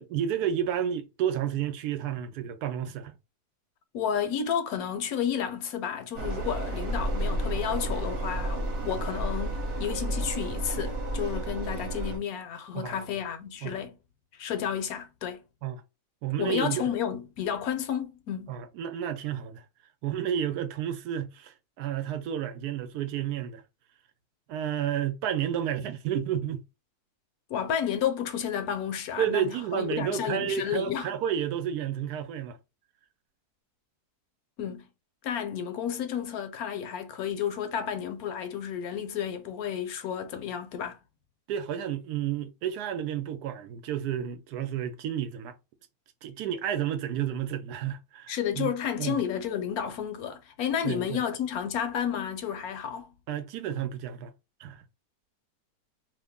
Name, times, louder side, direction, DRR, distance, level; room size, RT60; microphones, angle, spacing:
voice 1, 0.0-3.1 12.7-13.1 13.6-13.8 15.6-15.8 16.2-16.9 18.5-19.6 20.0-23.6 24.5-26.6 29.2-32.6 41.5-45.6 46.2-48.7 49.0-49.2 50.8-51.2 53.3-54.3 54.6-54.8, right 9 dB, 80° right, 1.1 m, -31 dB
voice 2, 3.9-14.0 14.4-15.4 16.4-18.6 27.5-31.1 34.6-34.9 35.2-41.0 48.3-53.1, left 8 dB, 75° left, 1.1 m, -31 dB
sound 1, 6.1-12.2, right 1 dB, 50° right, 1.1 m, -31 dB
2.8 x 2.5 x 3.5 m
omnidirectional pair, 1.7 m